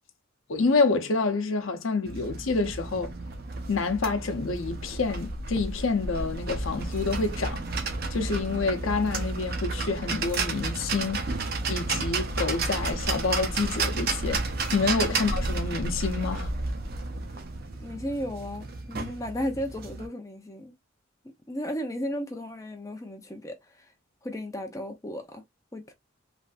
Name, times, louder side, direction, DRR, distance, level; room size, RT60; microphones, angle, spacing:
voice 1, 0.5-3.1 3.7-7.6 8.1-11.2 11.7-14.5 14.7-16.5, left 4 dB, 70° left, 0.7 m, -28 dB
sound 1, 2.1-20.1, right 3 dB, 45° right, 0.6 m, -32 dB
voice 2, 17.8-20.7 21.2-23.9 24.2-25.4 25.7-25.9, equal, 15° left, 0.5 m, -35 dB
3.2 x 2.5 x 2.4 m
head